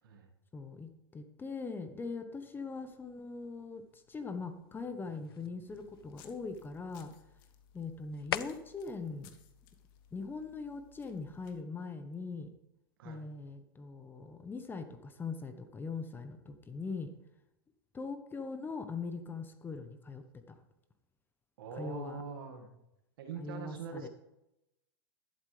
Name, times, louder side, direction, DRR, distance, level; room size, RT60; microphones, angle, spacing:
voice 1, 0.5-7.1 7.7-9.3 10.1-12.5 13.0-17.1 17.9-20.6 21.7-22.2 23.4-24.1, left 4 dB, 15° left, 9 dB, 1.0 m, -41 dB
sound 1, 2.7-10.7, left 10 dB, 85° left, 0.5 m, -47 dB
sound 2, 5.7-11.6, left 9 dB, 60° left, 1.4 m, -60 dB
voice 2, 21.6-22.7 23.2-24.1, right 5 dB, 70° right, 4 dB, 2.0 m, -43 dB
11.5 x 11.0 x 3.4 m, 0.90 s
hypercardioid pair, 115°, 12 cm